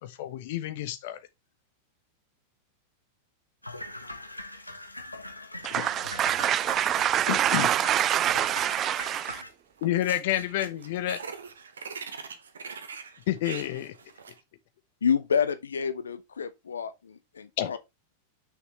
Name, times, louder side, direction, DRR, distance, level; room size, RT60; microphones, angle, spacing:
voice 1, 0.0-1.2 5.7-5.8 7.3-7.7 9.8-11.2 13.3-13.9 17.6-17.7, left 13 dB, 50° left, 1.0 m, -29 dB
sound 1, 3.6-9.5, left 1 dB, 85° left, 1.0 m, -41 dB
voice 2, 5.6-9.4, right 11 dB, 30° right, 0.3 m, -25 dB
sound 2, 9.0-9.5 9.8-14.4, right 5 dB, 70° right, 1.0 m, -42 dB
voice 3, 15.0-17.8, left 7 dB, 70° left, 0.6 m, -28 dB
6.3 x 6.3 x 3.1 m
figure-of-eight pair, 90°, 0 cm